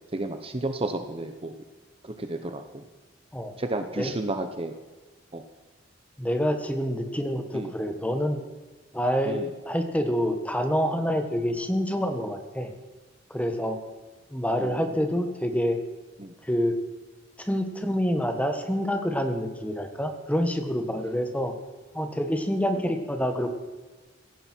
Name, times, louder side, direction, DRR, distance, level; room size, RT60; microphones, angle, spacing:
voice 1, 0.1-1.5 2.0-2.9 3.6-4.7 5.3-5.4 7.5-7.7 9.3-9.5 14.6-14.8 16.2-16.3, right 2 dB, 30° right, 7 dB, 1.0 m, -32 dB
voice 2, 6.2-8.4 8.9-12.7 13.3-13.8 14.3-15.8 16.4-16.8 17.4-21.5 21.9-23.5, equal, 10° left, 6 dB, 1.5 m, -27 dB
17.0 x 16.0 x 4.6 m, 1.3 s
head